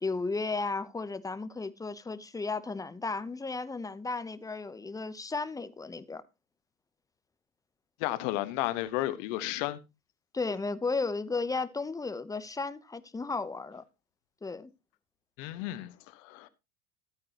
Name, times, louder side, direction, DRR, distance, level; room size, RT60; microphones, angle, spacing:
voice 1, 0.0-6.2 10.3-13.8 14.4-14.7, left 3 dB, 10° left, 0.7 m, -34 dB
voice 2, 8.0-9.8 15.4-16.5, left 15 dB, 60° left, 1.4 m, -33 dB
14.0 x 8.8 x 2.9 m
hypercardioid pair, 85°, 44 cm